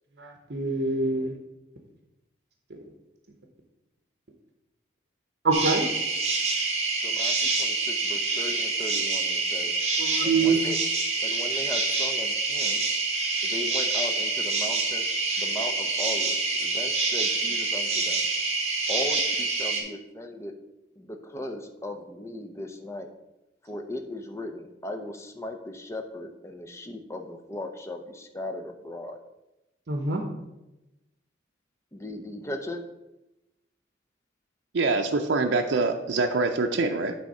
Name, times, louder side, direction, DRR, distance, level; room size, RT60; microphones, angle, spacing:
voice 1, 0.2-1.3 5.4-5.8 10.0-10.6 29.9-30.2, right 4 dB, 65° right, 3 dB, 0.9 m, -25 dB
sound 1, 5.5-19.8, right 3 dB, 35° right, 1.2 m, -27 dB
voice 2, 7.0-9.7 10.2-10.8 11.2-12.8 13.4-15.1 15.4-18.3 18.9-20.5 21.0-23.1 23.6-29.2 31.9-32.8, left 1 dB, 15° left, 5 dB, 0.6 m, -37 dB
voice 3, 34.7-37.2, right 3 dB, 80° right, 3 dB, 0.5 m, -25 dB
9.0 x 3.5 x 5.4 m, 0.96 s
head